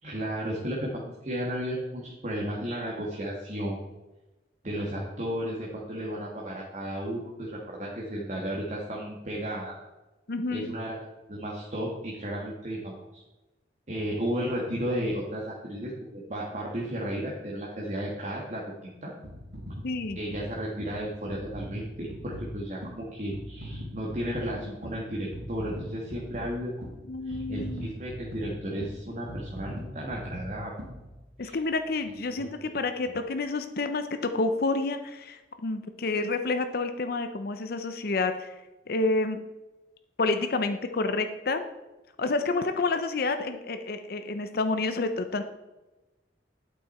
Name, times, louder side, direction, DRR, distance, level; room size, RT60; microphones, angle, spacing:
voice 1, 0.0-3.8 4.6-9.8 10.5-11.0 11.3-13.2 13.9-19.1 20.2-26.8 27.2-30.7 31.4-31.6 32.4-32.5, equal, 40° right, -3 dB, 1.4 m, -34 dB
voice 2, 10.3-10.7 19.8-20.2 27.1-27.9 31.4-38.5 38.9-39.4 40.2-41.6 42.2-45.4, left 3 dB, 55° left, 8 dB, 0.6 m, -29 dB
sound 1, 19.2-31.6 32.2-32.3, equal, 75° right, 3.2 m, -41 dB
8.5 x 8.5 x 4.2 m, 1.1 s
head